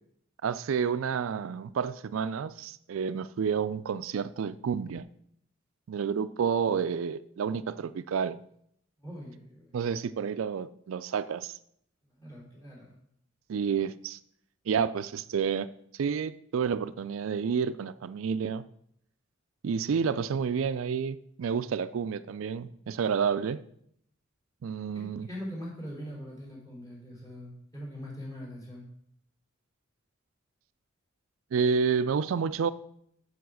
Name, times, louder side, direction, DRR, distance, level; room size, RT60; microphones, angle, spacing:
voice 1, 0.4-5.1 5.9-8.4 9.7-11.6 13.5-14.2 14.7-15.7 15.9-18.6 19.6-23.6 24.6-25.3 31.5-32.7, right 6 dB, 85° right, 0.4 m, -30 dB
voice 2, 9.0-9.8 12.1-13.0 24.9-28.9, equal, 20° left, 3.7 m, -42 dB
7.0 x 6.5 x 6.2 m
head